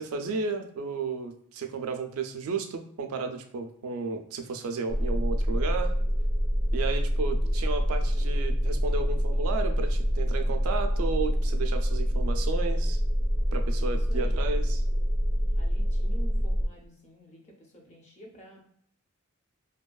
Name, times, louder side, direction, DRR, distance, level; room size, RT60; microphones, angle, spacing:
voice 1, 0.0-5.9 6.7-13.0 13.5-14.8, right 4 dB, 80° right, 6 dB, 0.4 m, -33 dB
sound 1, 4.9-16.7, equal, 70° left, 0.9 m, -26 dB
voice 2, 13.9-14.5 15.5-18.6, equal, 35° left, 1 dB, 0.6 m, -49 dB
2.7 x 2.3 x 2.2 m, 0.64 s
head